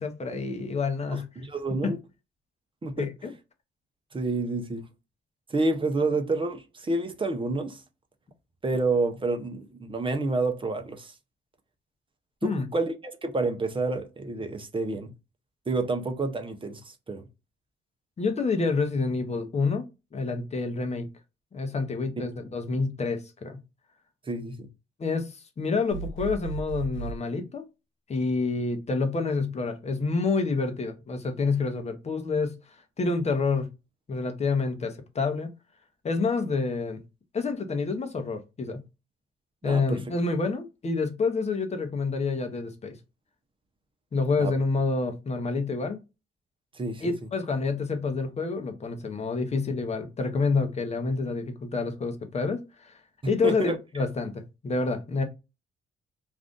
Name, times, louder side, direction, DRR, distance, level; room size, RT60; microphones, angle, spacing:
voice 1, 0.0-1.3 1.8-1.9 3.0-3.3 12.4-12.7 18.2-19.9 20.1-21.1 21.5-23.6 25.0-27.7 28.1-32.5 33.0-33.7 34.1-35.5 36.0-37.0 37.3-38.8 39.6-43.0 44.1-46.0 47.0-53.0 53.3-55.2, left 4 dB, 35° left, 0.8 m, -28 dB
voice 2, 1.1-2.0 2.8-3.1 4.1-4.8 5.5-7.8 8.6-11.1 12.4-12.9 13.2-15.1 15.7-16.8 17.1-17.2 24.3-24.7 39.6-40.0 44.4-44.5 46.7-47.0 53.2-53.8, right 3 dB, 25° right, 0.7 m, -28 dB
sound 1, 25.9-27.2, right 4 dB, 75° left, 0.9 m, -35 dB
2.6 x 2.4 x 3.6 m
cardioid pair, 90°, 20 cm